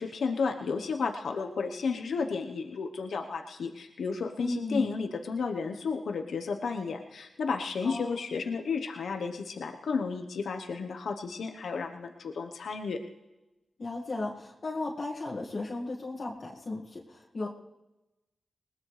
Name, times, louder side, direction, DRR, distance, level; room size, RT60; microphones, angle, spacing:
voice 1, 0.0-13.0, left 5 dB, 85° left, 4 dB, 1.1 m, -32 dB
voice 2, 4.4-4.9 7.8-8.2 13.8-17.5, left 2 dB, 60° left, -3 dB, 2.0 m, -35 dB
20.5 x 19.0 x 3.3 m, 0.99 s
cardioid pair, 45°, 0 cm